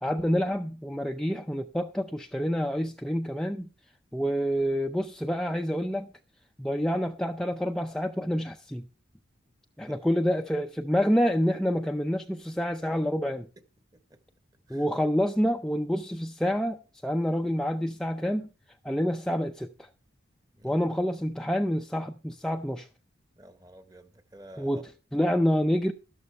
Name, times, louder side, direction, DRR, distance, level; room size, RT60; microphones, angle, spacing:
voice 1, 0.0-3.7 4.1-6.1 6.6-8.8 9.8-13.5 14.7-18.5 18.8-19.9 20.6-22.9 24.6-25.9, equal, 5° left, 0.4 m, -28 dB
voice 2, 23.4-24.8, right 1 dB, 20° right, 1.1 m, -51 dB
12.5 x 12.5 x 3.3 m
head